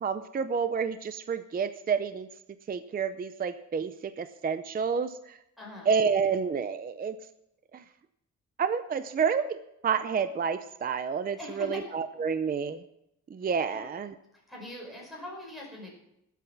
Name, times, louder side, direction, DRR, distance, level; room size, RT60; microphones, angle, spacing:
voice 1, 0.0-2.3 2.7-5.4 5.9-7.2 7.7-7.8 8.6-9.6 9.8-12.8 13.3-14.1, right 6 dB, 30° right, 11 dB, 0.5 m, -29 dB
voice 2, 5.6-5.9 11.4-11.8 13.7-13.9 14.3-15.9, left 1 dB, ahead, -3 dB, 5.4 m, -42 dB
19.0 x 8.2 x 6.0 m, 0.81 s
wide cardioid pair, 180°, 31 cm